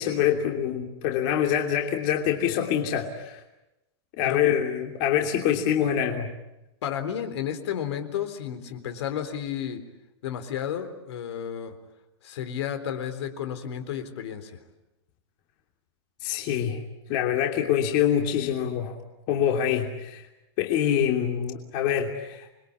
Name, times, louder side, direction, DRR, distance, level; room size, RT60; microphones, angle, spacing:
voice 1, 0.0-3.4 4.2-6.3 16.2-16.8 17.1-19.0 19.3-20.2 20.6-22.5, left 9 dB, 40° left, 2 dB, 3.0 m, -25 dB
voice 2, 6.8-9.8 10.2-11.7 12.2-14.6, left 9 dB, 65° left, 9 dB, 3.9 m, -32 dB
28.0 x 22.5 x 8.6 m, 0.92 s
supercardioid pair, 155°, 15 cm